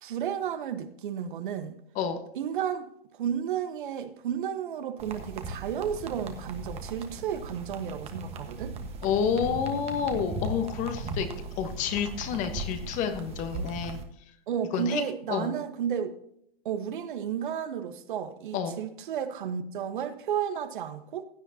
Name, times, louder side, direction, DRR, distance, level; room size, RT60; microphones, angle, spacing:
voice 1, 0.0-1.8 2.3-2.9 3.1-8.7 14.5-16.2 16.6-21.2, right 8 dB, 55° right, 1.3 m, -32 dB
sound 1, 5.0-14.0, right 2 dB, 20° right, 1.4 m, -38 dB
voice 2, 9.0-11.3 11.6-14.0 14.7-15.0 15.3-15.5 18.5-18.8, left 7 dB, 25° left, 1.2 m, -29 dB
16.0 x 9.7 x 2.8 m
hypercardioid pair, 130°, 30 cm